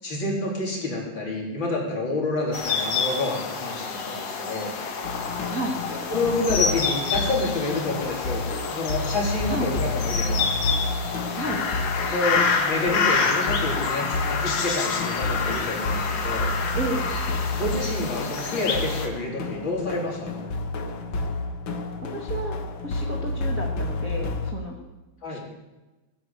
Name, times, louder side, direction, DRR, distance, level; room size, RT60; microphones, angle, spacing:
voice 1, 0.0-4.7 6.1-8.4 8.7-10.5 12.1-16.5 17.5-20.5 25.2-25.4, left 2 dB, 30° left, -2 dB, 4.0 m, -28 dB
sound 1, 2.5-19.1, left 5 dB, 50° left, 2.3 m, -28 dB
sound 2, 5.0-24.5, left 2 dB, 80° left, 1.1 m, -30 dB
voice 2, 16.8-17.1 21.7-21.8 22.1-24.8 25.3-25.4, right 1 dB, 80° right, 0 dB, 0.7 m, -32 dB
19.0 x 9.2 x 8.3 m, 1.1 s
omnidirectional pair, 4.4 m